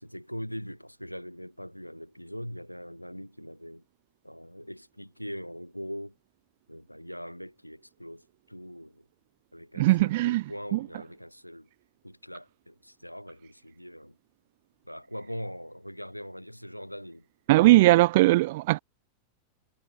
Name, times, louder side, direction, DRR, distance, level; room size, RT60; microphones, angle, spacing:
voice 1, 0.0-3.8 4.2-6.1 6.7-9.1 9.5-11.7 12.0-14.2 14.8-17.3, equal, 90° left, 4.4 m, -41 dB
voice 2, 9.8-10.4 10.7-10.9 17.5-18.8, right 19 dB, 50° right, 1.3 m, -19 dB
figure-of-eight pair, 90°, 0 cm